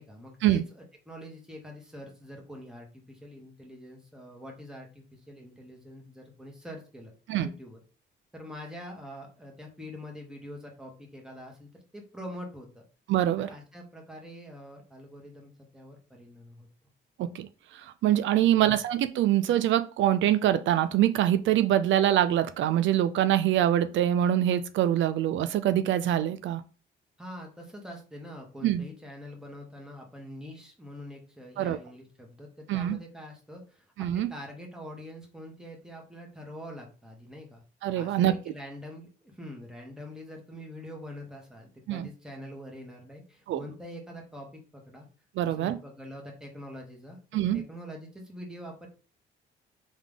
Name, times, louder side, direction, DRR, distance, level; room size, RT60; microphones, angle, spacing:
voice 1, 0.0-7.1 7.4-7.8 8.3-12.8 13.4-16.7 18.4-18.8 27.2-37.6 37.9-45.1 45.4-48.9, equal, 5° right, 0 dB, 1.6 m, -45 dB
voice 2, 13.1-13.5 17.2-26.6 28.6-28.8 31.6-31.8 32.7-33.0 34.0-34.3 37.8-38.3 41.9-42.1 43.5-43.6 45.4-45.8 47.3-47.6, right 12 dB, 75° right, 12 dB, 0.4 m, -24 dB
3.5 x 3.5 x 3.7 m, 0.35 s
cardioid pair, 90°, 20 cm